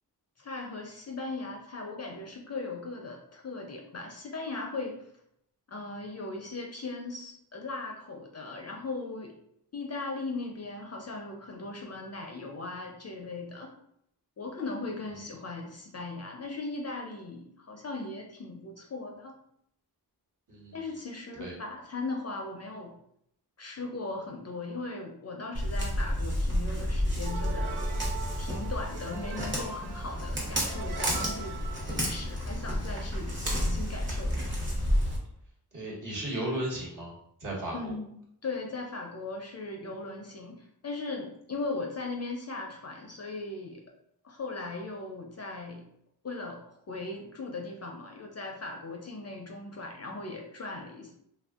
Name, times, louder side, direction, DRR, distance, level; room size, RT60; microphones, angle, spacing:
voice 1, 0.4-5.1 5.7-9.3 9.7-13.7 14.4-19.3 20.7-22.9 23.6-27.8 28.4-31.6 31.9-34.6 37.7-38.1 38.4-43.8 44.2-45.8 46.2-51.1, left 3 dB, 40° left, 1 dB, 0.5 m, -38 dB
Walk footsteps, 25.5-35.2, equal, 30° right, 0.9 m, -31 dB
sound 1, 27.2-32.7, right 5 dB, 70° right, 0.5 m, -42 dB
voice 2, 35.7-37.1 37.4-38.0, right 1 dB, 50° right, -5 dB, 1.3 m, -35 dB
3.3 x 2.5 x 2.4 m, 0.73 s
wide cardioid pair, 100°, 41 cm